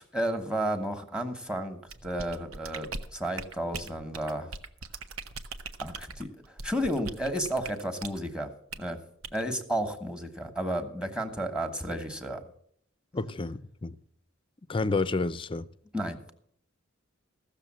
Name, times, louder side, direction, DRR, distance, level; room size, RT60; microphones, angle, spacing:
voice 1, 0.0-4.5 5.8-6.4 6.6-8.5 8.8-9.0 9.3-12.4 15.9-16.3, right 1 dB, 5° right, 1.2 m, -32 dB
sound 1, 1.9-8.2 8.7-8.9 9.2-9.4, right 4 dB, 85° right, 0.9 m, -40 dB
voice 2, 13.1-14.0 14.7-15.7, left 3 dB, 25° left, 0.5 m, -30 dB
15.5 x 6.7 x 7.4 m
head